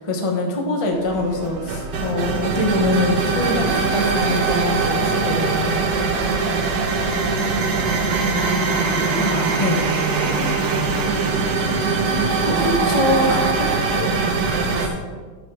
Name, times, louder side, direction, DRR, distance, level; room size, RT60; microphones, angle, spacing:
voice 1, 0.0-5.8 9.1-9.8 12.4-13.7 14.5-15.0, left 2 dB, 25° left, 1 dB, 0.8 m, -24 dB
sound 1, 0.9-14.9, right 4 dB, 60° right, 1.3 m, -21 dB
voice 2, 8.8-12.2 13.9-14.4, left 2 dB, 75° left, -2 dB, 2.6 m, -35 dB
9.2 x 7.0 x 4.6 m, 1.5 s
omnidirectional pair, 2.2 m